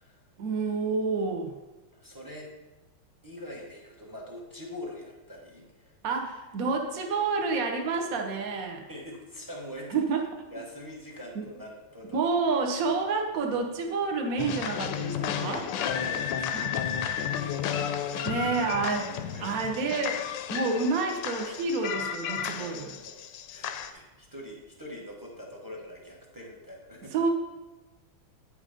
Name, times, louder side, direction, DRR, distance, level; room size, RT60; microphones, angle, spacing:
voice 1, 0.4-1.5 6.0-8.8 9.9-10.2 11.3-11.5 12.1-15.6 16.5-16.7 18.2-19.1 19.4-20.2 20.5-22.9 27.1-27.3, right 4 dB, 55° right, 3 dB, 1.0 m, -29 dB
voice 2, 1.9-2.5 3.2-6.0 8.9-10.0 10.5-12.2 15.3-16.5 17.2-17.6 18.1-18.5 18.8-19.6 22.6-23.2 23.5-27.1, left 1 dB, 20° right, -1 dB, 0.6 m, -44 dB
sound 1, 14.4-23.9, left 8 dB, 75° left, 1.1 m, -32 dB
8.9 x 5.1 x 5.0 m, 1.1 s
omnidirectional pair, 2.3 m